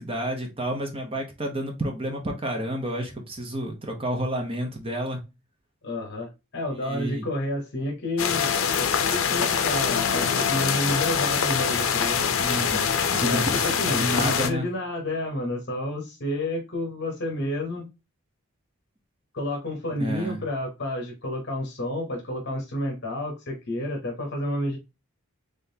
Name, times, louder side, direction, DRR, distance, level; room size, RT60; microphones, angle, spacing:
voice 1, 0.0-5.2 6.8-7.3 12.4-13.7 14.0-14.7 19.9-20.4, right 1 dB, 25° right, 3 dB, 0.7 m, -30 dB
voice 2, 5.8-8.5 8.8-12.3 13.2-17.9 19.3-24.8, left 1 dB, 50° left, 1 dB, 0.9 m, -30 dB
sound 1, 8.2-14.5, left 7 dB, 70° left, 0.5 m, -24 dB
3.7 x 3.4 x 2.7 m, 0.25 s
head